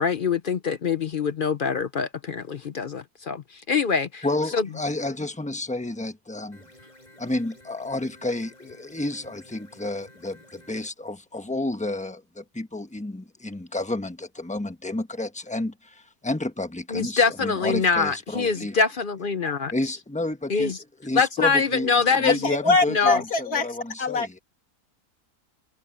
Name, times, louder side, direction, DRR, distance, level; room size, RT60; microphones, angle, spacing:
voice 1, 0.0-4.2 4.5-4.7 16.9-19.7 20.5-20.7 21.2-22.4 22.9-23.2, left 5 dB, 50° left, 0.6 m, -24 dB
voice 2, 4.2-6.6 7.2-18.8 19.7-20.7 21.0-24.4, left 2 dB, 5° left, 1.0 m, -31 dB
sound 1, 6.5-10.9, left 1 dB, 25° left, 7.1 m, -52 dB
voice 3, 22.2-24.4, left 3 dB, 70° left, 2.9 m, -24 dB
omnidirectional pair, 1.6 m